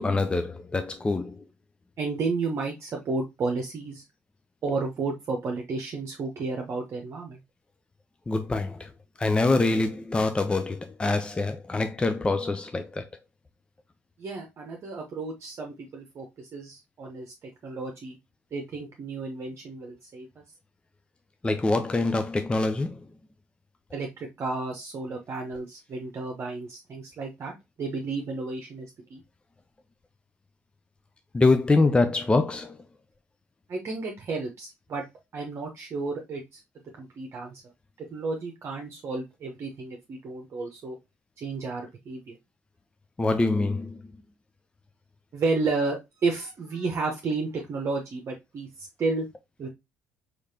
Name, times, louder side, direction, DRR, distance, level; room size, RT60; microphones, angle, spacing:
voice 1, 0.0-1.4 8.3-8.9 9.2-13.1 21.4-23.0 31.3-32.8 43.2-44.0, left 3 dB, 15° left, 0.5 m, -25 dB
voice 2, 2.0-4.0 4.6-7.4 14.2-18.2 18.5-20.4 23.9-27.5 27.8-29.2 33.7-35.0 35.3-36.6 37.0-37.6 38.0-41.0 41.4-42.4 45.3-49.3 49.6-49.7, right 3 dB, 40° right, 0.9 m, -32 dB
4.9 x 3.2 x 2.8 m
figure-of-eight pair, 55°, 7 cm